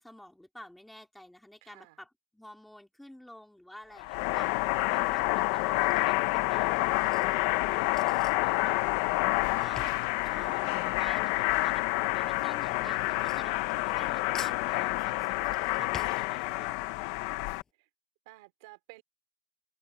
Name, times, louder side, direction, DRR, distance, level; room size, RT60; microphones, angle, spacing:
voice 1, 0.0-4.5 4.9-8.8 9.6-9.9 10.2-13.6 13.8-16.8, left 1 dB, 5° left, 3.4 m, -49 dB
voice 2, 1.6-2.0 9.2-9.8 10.1-10.8 12.2-12.4 17.8-17.9 18.3-19.0, right 22 dB, 85° right, 3.8 m, -55 dB
sound 1, 4.0-17.6, left 20 dB, 70° left, 1.0 m, -28 dB
Drawer open or close / Cutlery silverware, 5.9-11.5 11.7-14.1 14.3-16.9 17.3-17.4 17.6-17.7, left 6 dB, 20° left, 7.2 m, -49 dB
cardioid pair, 155°, 2 cm